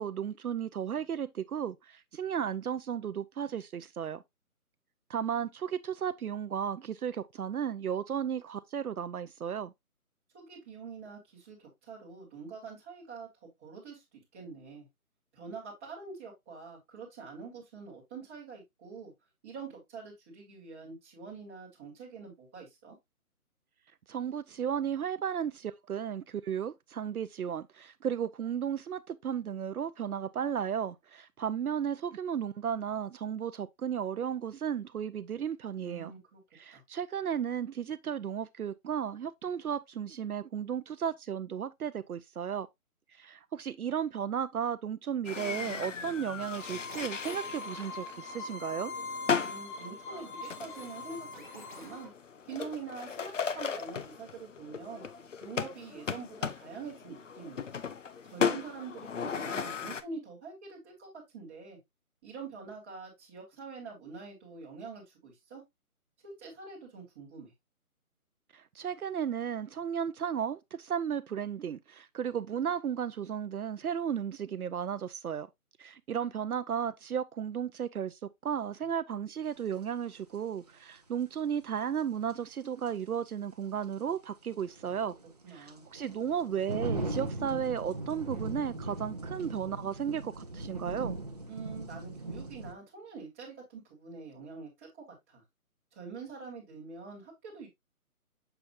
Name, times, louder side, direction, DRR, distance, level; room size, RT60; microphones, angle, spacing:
voice 1, 0.0-4.2 5.1-9.7 24.1-36.1 36.5-42.7 43.2-48.9 68.5-75.5 75.8-85.1 85.5-91.2, right 8 dB, 75° right, 0.6 m, -34 dB
voice 2, 10.3-13.3 13.6-14.9 15.3-19.1 19.4-23.0 35.8-36.4 36.7-36.8 49.3-52.1 52.5-55.1 55.4-57.7 58.2-61.8 62.2-65.6 66.2-67.5 85.4-85.8 91.5-95.4 95.9-97.7, right 5 dB, 10° right, 1.4 m, -45 dB
sound 1, 45.2-60.0, left 6 dB, 55° left, 0.7 m, -37 dB
sound 2, 46.6-52.1, left 3 dB, 35° left, 1.2 m, -42 dB
sound 3, 79.7-79.8 82.3-82.4 82.9-83.0 84.5-92.7, right 2 dB, 25° right, 0.8 m, -39 dB
6.9 x 5.8 x 2.5 m
hypercardioid pair, 165°, 44 cm